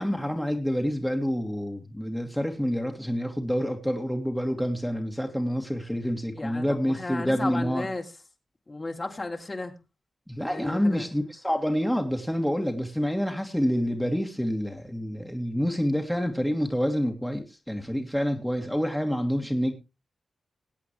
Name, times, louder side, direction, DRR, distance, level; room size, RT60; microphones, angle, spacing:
voice 1, 0.0-7.9 10.3-19.7, equal, 5° left, 2.3 m, -27 dB
voice 2, 6.3-8.1 8.7-9.7 10.5-11.1, left 2 dB, 35° left, 2.9 m, -34 dB
21.5 x 8.3 x 3.1 m
supercardioid pair, 40°, 0 cm